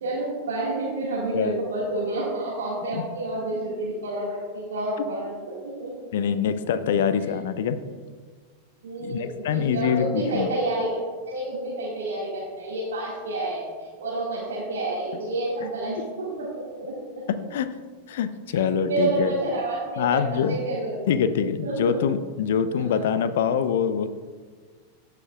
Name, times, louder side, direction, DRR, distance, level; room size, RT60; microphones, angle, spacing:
voice 1, 0.0-5.3 5.6-6.1 8.8-11.0 11.3-16.9 18.8-21.0 21.6-22.0 22.7-23.1, right 2 dB, 60° right, -7 dB, 1.8 m, -29 dB
voice 2, 1.3-1.6 2.9-3.0 6.1-7.8 9.0-10.5 17.3-17.7 18.1-19.3 20.0-20.6 21.1-24.1, left 7 dB, 55° left, 12 dB, 0.5 m, -24 dB
15.0 x 5.8 x 2.4 m, 1.5 s
figure-of-eight pair, 90°, 0 cm